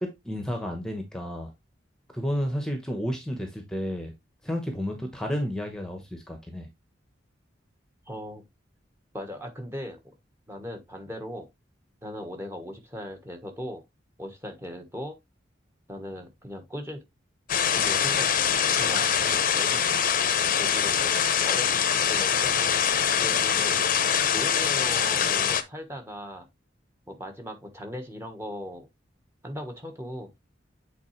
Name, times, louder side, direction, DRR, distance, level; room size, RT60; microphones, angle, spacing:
voice 1, 0.0-1.5 2.1-4.1 4.4-6.7, equal, 5° left, 1.0 m, -31 dB
voice 2, 8.1-8.4 9.1-10.0 10.5-11.5 12.0-13.8 14.2-15.2 15.9-17.0 17.7-18.3 18.8-19.8 20.6-21.1 21.4-22.8 23.2-23.8 24.3-26.5 27.1-28.9 29.4-30.3, equal, 15° right, 1.3 m, -38 dB
sound 1, 17.5-25.6, left 8 dB, 45° left, 0.7 m, -24 dB
8.4 x 4.0 x 3.2 m
head